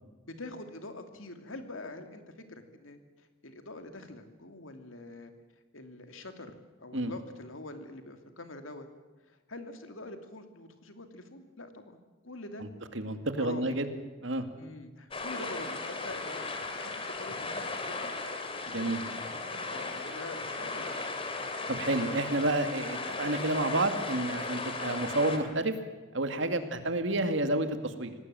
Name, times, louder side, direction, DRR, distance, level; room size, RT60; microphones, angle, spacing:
voice 1, 0.3-2.2 2.5-3.0 3.4-5.3 5.7-6.5 6.8-8.9 9.3-12.7 13.4-13.8 14.5-18.1 18.6-21.0 22.9-23.1 26.5-26.8, left 2 dB, 85° left, 7 dB, 2.7 m, -45 dB
voice 2, 12.9-13.9 14.2-14.5 18.7-19.0 21.7-25.7 26.1-28.1, right 2 dB, 65° right, 8 dB, 2.2 m, -30 dB
sound 1, 15.1-25.4, left 3 dB, 30° left, 2.9 m, -36 dB
25.5 x 18.5 x 7.7 m, 1.3 s
head